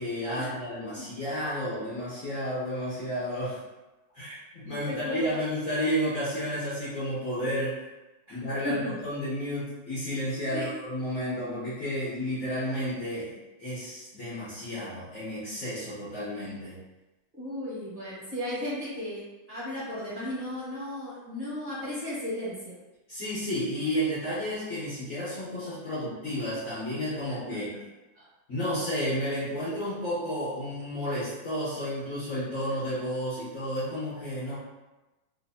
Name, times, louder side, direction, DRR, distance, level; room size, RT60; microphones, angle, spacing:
voice 1, 0.0-3.6 4.1-7.8 8.3-13.3 13.6-16.8 23.1-27.7 28.5-34.6, equal, 45° left, -11 dB, 1.4 m, -32 dB
voice 2, 4.7-5.4 8.3-8.4 8.6-8.9 10.5-10.7 17.3-22.7 28.1-28.2, left 1 dB, 25° right, -10 dB, 1.4 m, -35 dB
3.4 x 2.9 x 2.7 m, 1.1 s
omnidirectional pair, 2.3 m